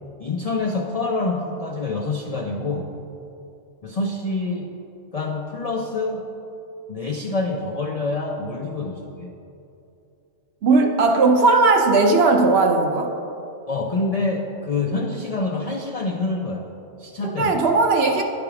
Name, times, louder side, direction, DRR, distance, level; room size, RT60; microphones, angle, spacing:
voice 1, 0.2-2.9 3.8-4.7 5.1-6.3 6.9-9.3 13.7-16.7 17.0-17.6, left 3 dB, 60° left, 1 dB, 0.4 m, -26 dB
voice 2, 10.6-13.1 17.2-18.2, right 3 dB, 60° right, 3 dB, 0.9 m, -17 dB
9.9 x 3.4 x 5.8 m, 2.7 s
omnidirectional pair, 1.3 m